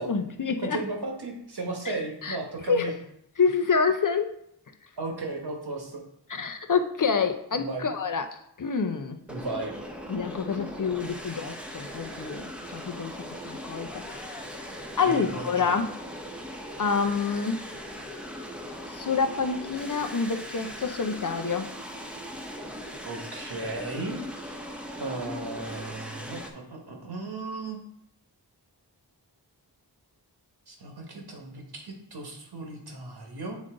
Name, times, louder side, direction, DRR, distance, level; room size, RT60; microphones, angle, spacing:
voice 1, 0.1-0.8 1.8-2.4 2.7-2.9 3.4-4.3 6.3-9.2 10.1-14.3 15.0-15.9 16.8-17.6 18.9-21.7, left 5 dB, 50° left, 7 dB, 0.6 m, -27 dB
voice 2, 0.6-2.9 5.0-6.0 7.5-7.9 9.3-9.7 15.0-15.7 23.0-24.7 25.0-27.8 30.7-33.6, right 2 dB, 65° right, 1 dB, 1.5 m, -35 dB
sound 1, 9.3-26.5, equal, 5° right, 1.0 m, -39 dB
sound 2, 13.8-15.3, left 4 dB, 80° left, 0.9 m, -49 dB
7.3 x 3.8 x 3.7 m, 0.73 s
wide cardioid pair, 55°, 41 cm